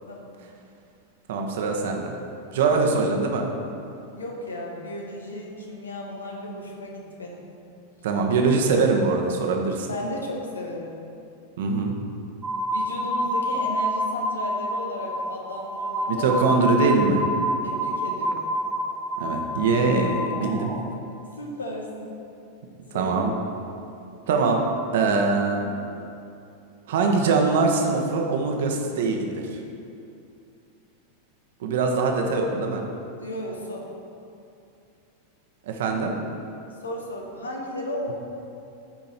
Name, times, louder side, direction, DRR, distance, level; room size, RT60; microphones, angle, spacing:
voice 1, 1.3-2.1 2.5-3.5 8.0-9.9 11.6-11.9 16.1-17.2 19.2-20.7 22.9-23.3 24.3-24.6 24.9-25.7 26.9-29.3 31.6-32.8 35.7-36.1, right 4 dB, 55° right, 2 dB, 1.1 m, -22 dB
voice 2, 4.1-7.4 9.9-11.0 12.7-16.6 17.6-18.5 21.3-22.2 22.9-23.1 33.2-33.9 36.8-38.1, left 1 dB, 75° left, 0 dB, 1.5 m, -34 dB
sound 1, 12.4-20.9, equal, 15° right, 0.9 m, -28 dB
13.5 x 5.3 x 4.4 m, 2.6 s
figure-of-eight pair, 90°, 0 cm